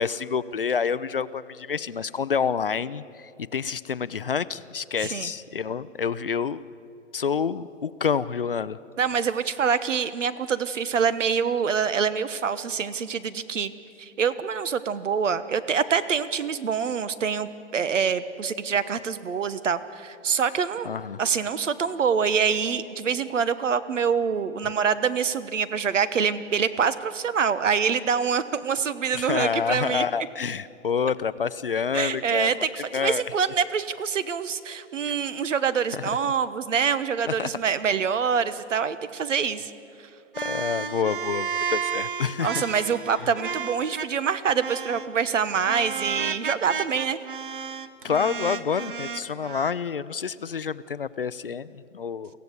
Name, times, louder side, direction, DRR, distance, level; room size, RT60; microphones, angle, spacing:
voice 1, 0.0-6.6 7.1-8.8 20.9-21.2 29.1-32.5 32.9-33.2 35.9-36.0 37.4-37.5 40.4-42.6 48.0-52.3, left 6 dB, 45° left, 16 dB, 0.5 m, -28 dB
voice 2, 5.0-5.3 9.0-13.7 14.0-20.9 21.2-30.0 31.9-39.7 42.4-47.2, right 6 dB, 75° right, 14 dB, 1.2 m, -25 dB
sound 1, 40.3-44.3 44.6-45.1 45.7-49.7, right 6 dB, 45° right, 0.7 m, -32 dB
24.0 x 15.5 x 8.1 m, 2.5 s
hypercardioid pair, 180°, 38 cm